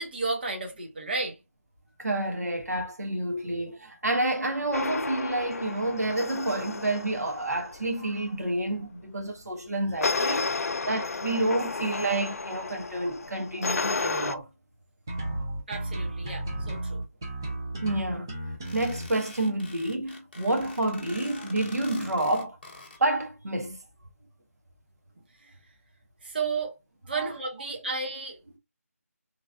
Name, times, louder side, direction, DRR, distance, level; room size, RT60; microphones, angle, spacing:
voice 1, 0.0-1.3 15.7-17.0 26.2-26.7 27.1-28.4, right 3 dB, 40° right, 0.8 m, -32 dB
voice 2, 2.0-14.5 17.8-18.3 18.7-22.6 23.0-23.8 27.1-27.3, right 2 dB, 90° right, 1.1 m, -29 dB
sound 1, 4.7-7.9 10.0-14.4, left 3 dB, 70° left, 0.3 m, -32 dB
sound 2, 15.1-19.1, right 1 dB, 15° right, 0.4 m, -33 dB
sound 3, 18.6-23.0, left 3 dB, 40° left, 0.8 m, -46 dB
3.1 x 2.4 x 2.3 m
figure-of-eight pair, 170°, 8 cm